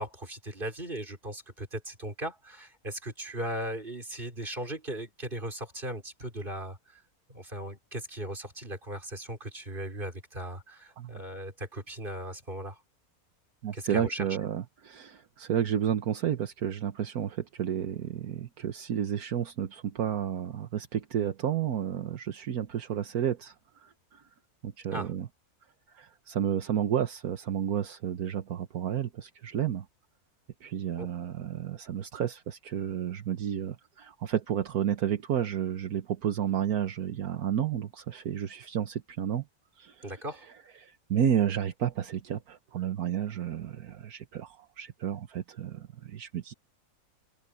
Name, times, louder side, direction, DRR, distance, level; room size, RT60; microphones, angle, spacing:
voice 1, 0.0-7.0 7.3-12.8 13.7-14.3 24.9-25.1 31.0-31.1 40.0-40.5, right 1 dB, 35° right, 5.3 m, -38 dB
voice 2, 13.6-24.3 24.6-25.3 25.9-29.9 30.6-39.4 39.7-40.1 40.8-46.5, right 9 dB, 75° right, 1.5 m, -31 dB
open air
omnidirectional pair, 1.6 m